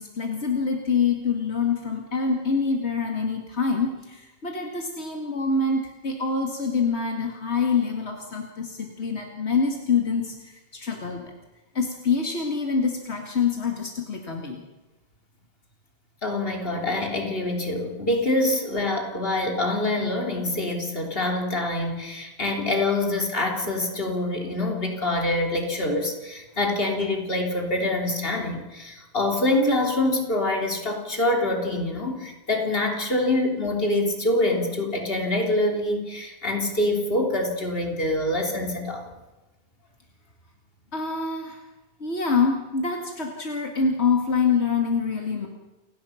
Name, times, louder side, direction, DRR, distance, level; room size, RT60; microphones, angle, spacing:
voice 1, 0.0-10.3 10.7-11.3 11.7-14.6 40.9-41.6 42.0-45.5, left 5 dB, 85° left, 2 dB, 2.5 m, -25 dB
voice 2, 16.2-39.0, left 1 dB, 60° left, 2 dB, 3.7 m, -25 dB
29.0 x 17.5 x 5.8 m, 1.1 s
omnidirectional pair, 1.1 m